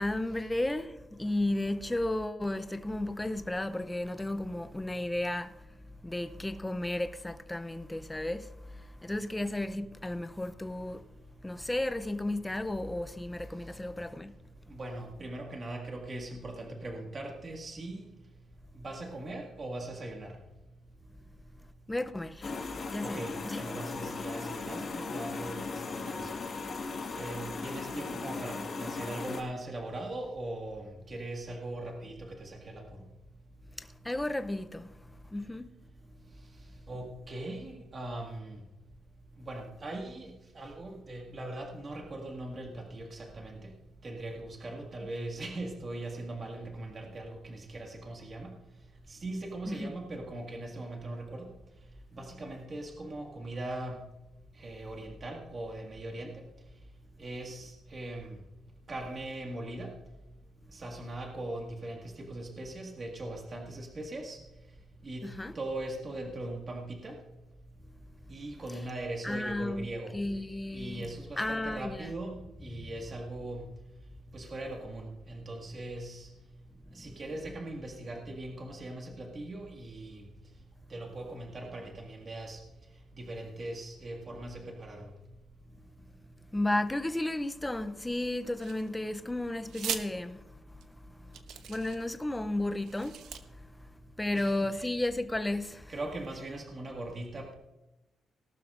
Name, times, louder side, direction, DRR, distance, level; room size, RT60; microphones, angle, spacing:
voice 1, 0.0-5.7 6.0-11.1 11.4-14.3 21.9-23.6 33.8-35.7 49.7-49.9 65.2-65.5 69.2-69.9 70.1-71.0 71.4-72.1 76.9-77.2 86.5-95.9, left 1 dB, 10° left, 0.5 m, -34 dB
voice 2, 14.7-18.0 18.8-20.3 23.0-26.3 27.1-33.0 36.9-38.6 39.4-43.7 44.0-48.5 49.1-51.5 52.1-54.0 54.6-56.3 57.2-58.3 58.9-59.9 60.7-64.4 65.0-65.3 65.6-67.2 68.3-70.1 70.7-73.7 74.3-76.3 77.0-80.3 80.9-82.6 83.2-85.1 94.3-94.9 95.9-97.5, right 1 dB, 30° right, 1.8 m, -40 dB
sound 1, 22.4-29.4, left 4 dB, 35° left, 1.6 m, -37 dB
sound 2, 88.6-89.1 89.7-90.0 90.8-90.9 91.3-92.2 92.8-93.4, right 8 dB, 85° right, 0.9 m, -39 dB
18.5 x 12.0 x 2.5 m
cardioid pair, 170°, 0 cm